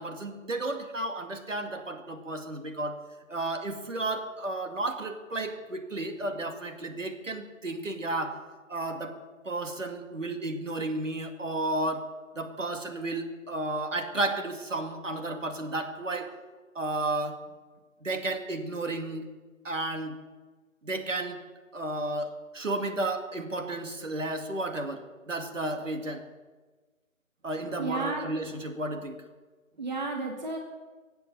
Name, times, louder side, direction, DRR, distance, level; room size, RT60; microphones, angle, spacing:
voice 1, 0.0-3.0 3.3-8.4 8.7-9.1 9.5-12.1 12.4-16.3 16.7-17.4 18.0-19.2 19.6-20.1 20.8-21.4 21.7-26.2 27.4-29.2, right 2 dB, 65° right, 5 dB, 2.4 m, -32 dB
voice 2, 27.8-28.3 29.8-30.6, right 3 dB, 30° right, 2 dB, 1.6 m, -32 dB
22.5 x 8.2 x 7.0 m, 1.3 s
figure-of-eight pair, 170°, 42 cm